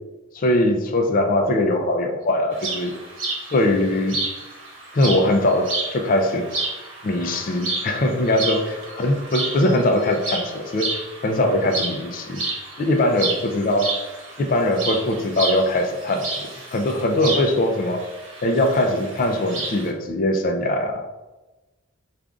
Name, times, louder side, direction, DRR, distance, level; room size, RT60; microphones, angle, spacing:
voice 1, 0.3-3.0 3.5-4.2 4.9-6.5 7.0-12.4 12.8-13.9 14.4-16.4 16.7-18.0 18.4-21.0, left 1 dB, 45° left, 4 dB, 0.4 m, -21 dB
sound 1, 2.5-19.9, right 3 dB, 70° right, 1.0 m, -31 dB
4.9 x 2.4 x 2.3 m, 1.1 s
head